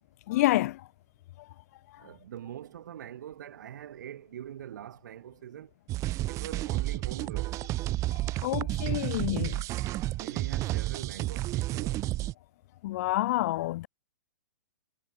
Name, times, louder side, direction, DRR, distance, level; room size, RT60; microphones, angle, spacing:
voice 1, 0.3-0.8 8.4-9.6 12.8-13.9, left 17 dB, 50° left, 0.4 m, -28 dB
voice 2, 2.0-5.7 6.3-7.6 10.2-12.0, right 10 dB, 70° right, 2.6 m, -43 dB
sound 1, 5.9-12.3, right 16 dB, 30° right, 0.8 m, -31 dB
hypercardioid pair, 120°, 10 cm